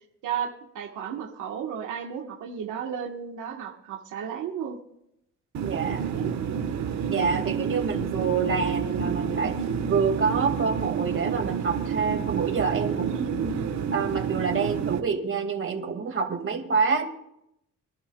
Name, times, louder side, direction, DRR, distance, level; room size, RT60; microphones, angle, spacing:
voice 1, 0.2-4.8 6.0-6.3 13.0-13.4, right 8 dB, 85° right, 1 dB, 1.5 m, -34 dB
sound 1, 5.5-15.0, right 7 dB, 65° right, 1.4 m, -29 dB
voice 2, 5.6-6.1 7.1-9.6 9.9-13.5 13.9-17.0, right 5 dB, 45° right, 4 dB, 2.2 m, -27 dB
25.5 x 11.5 x 2.4 m, 0.79 s
cardioid pair, 90°, 30 cm